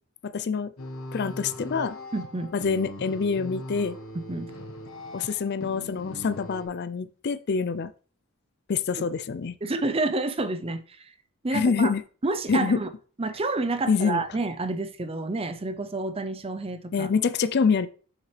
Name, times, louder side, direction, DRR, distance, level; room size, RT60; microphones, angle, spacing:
voice 1, 0.3-0.7 1.1-2.0 2.5-4.0 5.1-7.9 8.7-9.5 11.5-12.0 12.5-12.8 13.9-14.2 16.9-17.9, left 5 dB, 50° left, 0.4 m, -26 dB
sound 1, 0.8-6.7, left 1 dB, 65° left, 1.1 m, -40 dB
voice 2, 2.1-2.5 4.1-4.5 9.6-11.1 11.4-11.9 12.2-12.9 13.2-17.1, right 2 dB, 25° right, 0.5 m, -29 dB
6.6 x 5.9 x 3.3 m
head